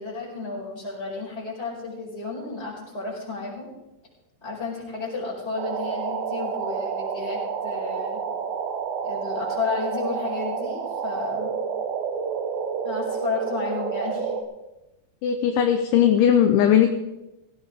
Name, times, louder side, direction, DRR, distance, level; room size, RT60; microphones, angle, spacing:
voice 1, 0.0-3.7 4.4-8.2 9.0-11.5 12.8-14.3, left 4 dB, 10° left, -4 dB, 4.8 m, -32 dB
sound 1, 5.6-14.4, right 6 dB, 75° right, 2.2 m, -29 dB
voice 2, 15.2-16.9, left 9 dB, 75° left, 6 dB, 2.9 m, -18 dB
17.0 x 16.5 x 3.7 m, 0.95 s
omnidirectional pair, 6.0 m